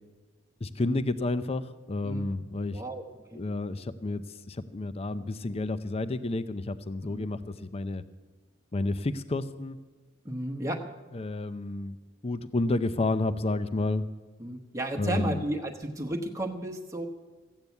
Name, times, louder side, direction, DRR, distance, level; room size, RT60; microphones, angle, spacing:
voice 1, 0.6-2.8 3.3-8.0 8.7-9.8 11.1-12.0 12.2-14.0 15.0-15.4, left 2 dB, 30° left, 13 dB, 0.5 m, -30 dB
voice 2, 2.7-3.4 7.1-7.3 10.2-10.9 14.4-17.1, right 1 dB, 15° right, 2 dB, 1.0 m, -33 dB
14.5 x 8.9 x 8.1 m, 1.2 s
head